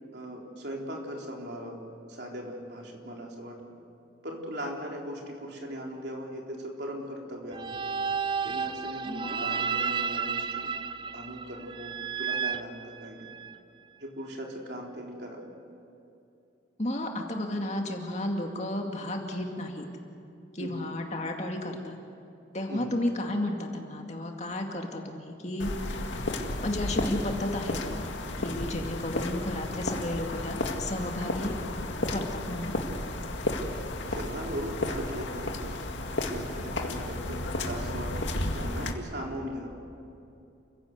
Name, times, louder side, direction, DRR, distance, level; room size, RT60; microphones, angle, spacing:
voice 1, 0.1-1.8 2.1-3.6 4.2-7.6 8.4-10.7 11.1-13.2 14.0-15.4 20.6-20.7 22.7-23.0 34.0-35.6 36.2-39.7, equal, 60° right, 0 dB, 4.0 m, -39 dB
sound 1, 7.5-13.5, right 6 dB, 25° right, 0.6 m, -32 dB
voice 2, 9.1-9.6 16.8-19.9 20.5-21.9 22.5-25.7 26.6-31.6 32.1-32.7, left 1 dB, 35° left, 2 dB, 2.4 m, -33 dB
sound 2, 25.6-38.9, left 1 dB, 75° left, 2.1 m, -33 dB
29.5 x 16.5 x 8.2 m, 2.7 s
head